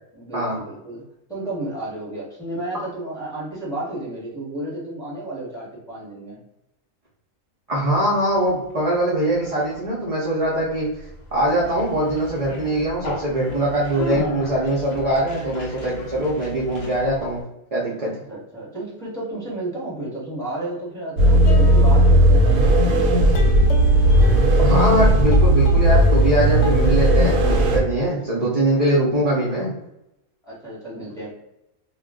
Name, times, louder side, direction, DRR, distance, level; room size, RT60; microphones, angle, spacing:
voice 1, 0.1-1.0 1.3-6.4 18.0-23.3 30.4-31.3, right 1 dB, 5° left, -7 dB, 1.0 m, -32 dB
voice 2, 7.7-10.9 11.3-17.4 17.7-18.1 24.6-29.7, right 1 dB, 40° right, -6 dB, 0.6 m, -22 dB
Conversation, 8.1-17.4, left 2 dB, 50° left, 0.5 m, -35 dB
sound 1, 21.2-27.8, right 1 dB, 75° right, 1.0 m, -15 dB
sound 2, 21.4-22.8 23.3-26.3 26.6-26.9, left 3 dB, 70° left, 0.9 m, -35 dB
2.4 x 2.2 x 3.5 m, 0.88 s
omnidirectional pair, 1.4 m